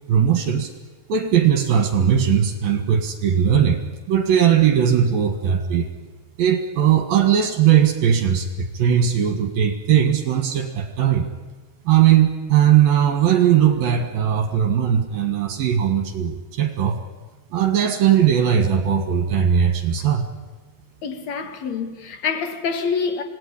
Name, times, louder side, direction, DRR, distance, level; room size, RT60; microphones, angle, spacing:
voice 1, 0.1-0.7 1.1-5.9 6.4-11.3 11.9-17.0 17.5-20.2, right 9 dB, 65° right, 3.2 m, -18 dB
voice 2, 21.0-23.2, left 5 dB, 50° left, 2.3 m, -26 dB
27.5 x 18.0 x 9.9 m
omnidirectional pair, 5.1 m